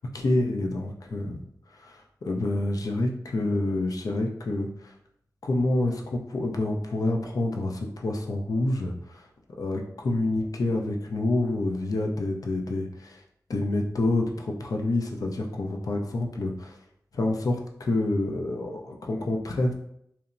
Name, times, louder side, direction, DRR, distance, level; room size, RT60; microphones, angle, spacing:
voice 1, 0.1-1.5 1.8-4.9 5.4-9.3 9.6-13.2 13.5-16.8 17.1-19.7, left 2 dB, 60° left, 2 dB, 0.5 m, -28 dB
2.8 x 2.1 x 2.4 m, 0.73 s
cardioid pair, 40°, 7 cm